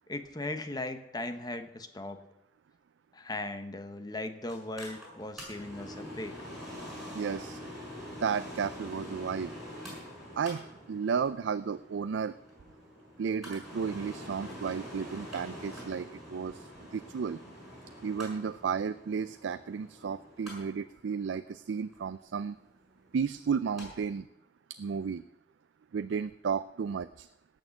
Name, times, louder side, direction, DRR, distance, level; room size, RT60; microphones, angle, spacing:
voice 1, 0.1-2.2 3.1-6.3, left 2 dB, 20° left, 8 dB, 1.0 m, -38 dB
Mechanical fan, 4.5-23.9 24.2-24.3, equal, ahead, 6.4 m, -46 dB
voice 2, 7.1-7.6 8.2-9.5 10.4-12.4 13.2-17.4 18.0-22.6 23.1-24.3 24.8-25.2 25.9-27.3, right 6 dB, 90° right, 13 dB, 0.4 m, -33 dB
17.5 x 6.5 x 7.1 m, 0.89 s
head